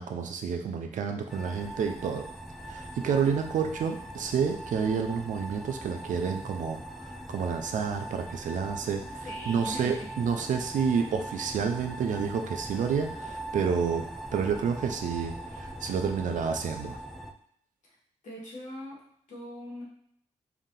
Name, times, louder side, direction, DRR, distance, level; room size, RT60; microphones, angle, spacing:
voice 1, 0.0-2.2 2.6-14.0 14.3-17.0, right 6 dB, 90° right, 5 dB, 0.5 m, -29 dB
sound 1, 1.3-17.3, right 1 dB, ahead, 0.4 m, -41 dB
voice 2, 9.2-10.1 11.1-11.2 17.8-17.9 18.2-19.8, left 1 dB, 85° left, -5 dB, 1.4 m, -41 dB
3.4 x 2.7 x 3.7 m, 0.66 s
cardioid pair, 70°, 13 cm